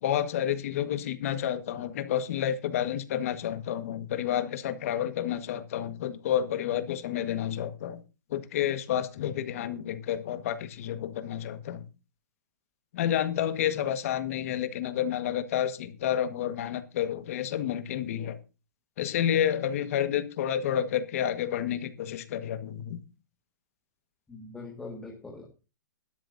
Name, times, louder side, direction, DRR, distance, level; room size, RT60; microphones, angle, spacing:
voice 1, 0.0-8.0 8.3-11.8 12.9-18.4 19.0-23.0, left 10 dB, 50° left, 1.6 m, -30 dB
voice 2, 24.3-25.5, left 3 dB, 5° left, 1.9 m, -42 dB
18.0 x 12.5 x 2.7 m
hypercardioid pair, 160°, 10 cm